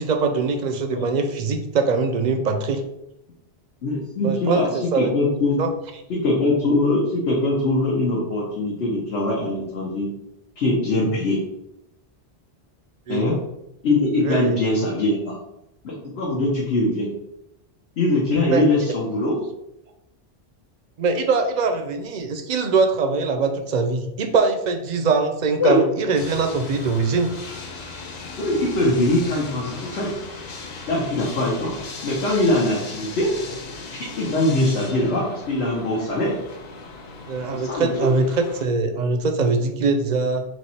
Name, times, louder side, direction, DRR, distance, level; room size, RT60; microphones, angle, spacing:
voice 1, 0.0-2.8 4.2-5.1 5.6-5.7 13.1-13.3 14.2-14.6 18.5-18.6 21.0-27.3 37.3-40.5, right 4 dB, 55° right, 6 dB, 0.5 m, -22 dB
voice 2, 3.8-5.6 6.1-10.1 10.6-11.4 13.1-13.4 13.8-15.2 15.8-17.1 18.0-19.3 25.6-25.8 28.4-30.1 30.9-31.8 32.0-33.3 33.9-36.4 37.5-38.1, left 2 dB, 80° left, -5 dB, 1.2 m, -22 dB
sound 1, 26.1-38.7, left 3 dB, 50° left, 0.6 m, -37 dB
3.4 x 3.1 x 4.1 m, 0.85 s
omnidirectional pair, 1.1 m